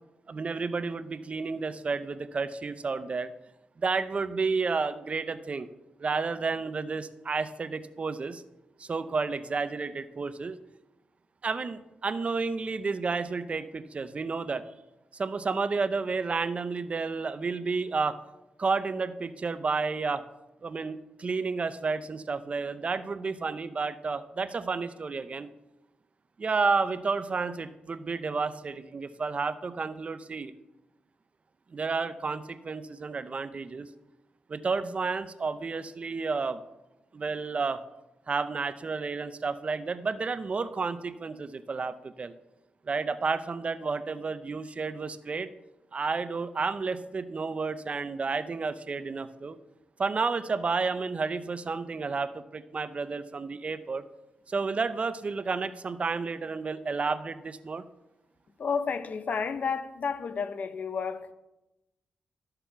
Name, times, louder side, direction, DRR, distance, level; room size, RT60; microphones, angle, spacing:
voice 1, 0.3-3.3 3.8-5.7 6.0-8.4 8.8-10.6 11.4-14.6 15.1-18.2 18.6-20.2 20.6-25.5 26.4-30.5 31.7-33.9 34.5-36.6 37.1-37.8 38.3-42.3 42.9-45.5 45.9-49.6 50.0-54.0 54.5-57.8, right 4 dB, 45° right, 0.7 m, -31 dB
voice 2, 58.6-61.3, left 5 dB, 60° left, 0.8 m, -31 dB
13.0 x 6.9 x 5.7 m
cardioid pair, 75°, 3 cm